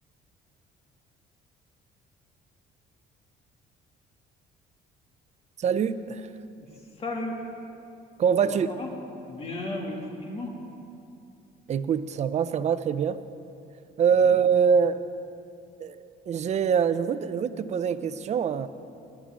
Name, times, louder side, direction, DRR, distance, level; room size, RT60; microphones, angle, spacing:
voice 1, 5.6-6.3 8.2-8.7 11.7-13.2 14.0-15.0 15.8-18.7, right 7 dB, 40° right, 13 dB, 0.6 m, -24 dB
voice 2, 7.0-7.4 8.4-8.9 9.3-10.5, left 2 dB, 35° left, 0 dB, 2.5 m, -34 dB
19.5 x 11.5 x 3.8 m, 2.6 s
cardioid pair, 110°, 17 cm